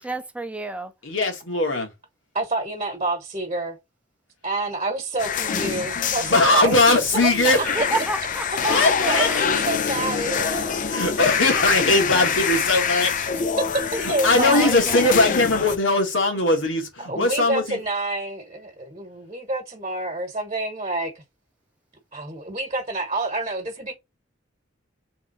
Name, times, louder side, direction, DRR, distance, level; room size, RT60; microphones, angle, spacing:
voice 1, 0.0-0.9 7.7-9.4 13.5-13.6 14.3-15.2, right 2 dB, 5° right, 0.7 m, -31 dB
voice 2, 1.0-1.9 6.2-7.8 8.7-9.3 10.9-13.3 14.0-17.8, left 2 dB, 75° left, 1.8 m, -20 dB
voice 3, 2.3-3.8 4.4-7.9 8.2-11.1 13.3-14.8 17.0-21.2 22.1-23.9, right 2 dB, 30° right, 1.2 m, -28 dB
sound 1, 5.2-15.8, left 6 dB, 40° left, 0.5 m, -25 dB
3.6 x 3.3 x 4.3 m
head